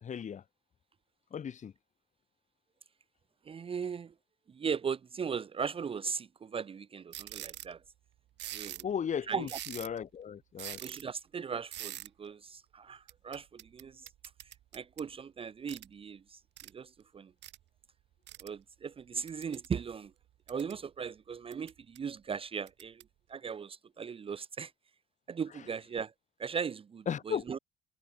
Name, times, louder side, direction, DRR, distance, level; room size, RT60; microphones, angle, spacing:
voice 1, 0.0-0.4 1.3-1.7 8.8-9.5 9.7-10.8 27.1-27.4, left 8 dB, 40° left, 2.8 m, -35 dB
voice 2, 3.5-4.1 4.5-7.8 8.4-8.9 9.3-9.6 10.8-14.1 14.7-17.3 18.4-20.1 20.5-23.0 23.3-24.7 25.3-26.1 26.4-27.6, right 6 dB, 30° right, 0.8 m, -38 dB
sound 1, 7.1-7.7 8.4-8.9 9.4-10.0 10.6-11.0 11.7-12.1 13.1-15.1 15.7-15.9 16.6-16.7 17.4-17.6 18.3-18.5 19.3-19.7 20.2-20.8 21.5-22.0 22.7-23.0, right 13 dB, 70° right, 2.2 m, -44 dB
cardioid pair, 140°, 19 cm